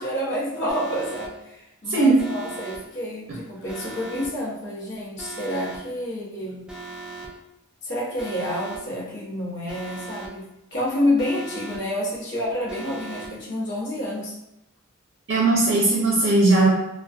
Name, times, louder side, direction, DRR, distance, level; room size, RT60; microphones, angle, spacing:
voice 1, 0.0-6.6 7.8-10.4 10.7-14.3, left 1 dB, 55° left, -5 dB, 0.8 m, -28 dB
Alarm, 0.7-1.3 2.2-2.8 3.7-4.3 5.2-5.8 6.7-7.3 8.2-8.8 9.7-10.3 11.2-11.8 12.7-13.3, right 3 dB, 5° right, 0.3 m, -38 dB
voice 2, 15.3-16.7, right 2 dB, 55° right, -5 dB, 0.6 m, -18 dB
2.4 x 2.2 x 2.4 m, 0.88 s
head